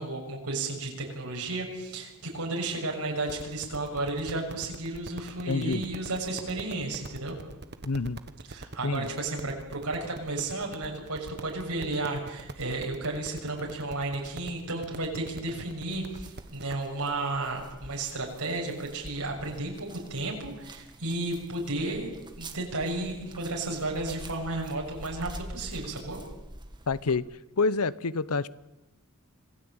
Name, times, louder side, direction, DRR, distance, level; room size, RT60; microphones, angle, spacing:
voice 1, 0.0-7.3 8.5-22.1 22.4-26.2, right 2 dB, 90° right, 0 dB, 6.6 m, -33 dB
sound 1, 3.2-16.8, right 2 dB, 50° right, 1.4 m, -45 dB
voice 2, 5.5-5.8 7.8-8.2 8.8-9.1 26.9-27.2 27.6-28.5, left 4 dB, 80° left, 18 dB, 0.8 m, -27 dB
sound 2, 15.9-27.2, right 1 dB, 20° right, 2.1 m, -46 dB
26.5 x 17.5 x 8.9 m, 0.96 s
head